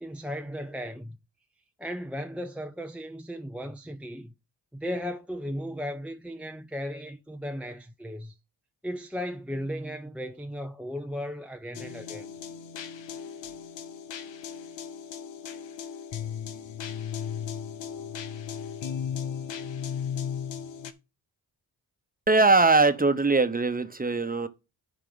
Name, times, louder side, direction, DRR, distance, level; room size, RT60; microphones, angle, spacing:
voice 1, 0.0-1.2 1.8-4.3 4.7-8.4 8.8-12.3, equal, 5° right, 0.6 m, -36 dB
sound 1, 11.7-20.9, left 8 dB, 90° left, 0.9 m, -36 dB
voice 2, 22.3-24.5, right 3 dB, 20° right, 1.0 m, -21 dB
10.5 x 4.9 x 4.0 m
cardioid pair, 60°, 43 cm